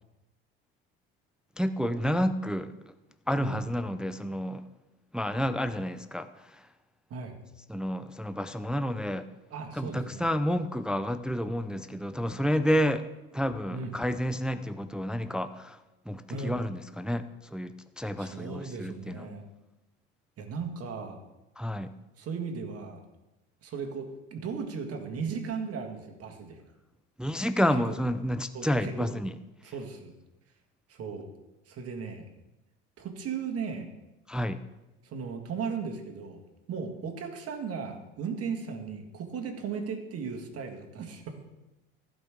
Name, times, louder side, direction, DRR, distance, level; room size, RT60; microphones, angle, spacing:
voice 1, 1.6-2.9 3.3-4.6 5.1-6.7 7.7-9.3 9.7-13.1 13.3-19.3 21.6-21.9 27.2-29.4 29.6-29.7 34.3-34.6, equal, 5° right, 11 dB, 0.4 m, -30 dB
voice 2, 9.5-10.3 13.7-13.9 16.3-16.6 18.2-19.4 20.4-21.2 22.2-23.0 23.6-26.6 28.5-29.1 29.6-30.1 30.9-31.3 31.7-32.3 33.0-33.9 35.0-36.4 36.7-41.5, right 5 dB, 50° right, 4 dB, 1.9 m, -36 dB
15.5 x 5.3 x 3.7 m, 1.0 s
supercardioid pair, 80°, 30 cm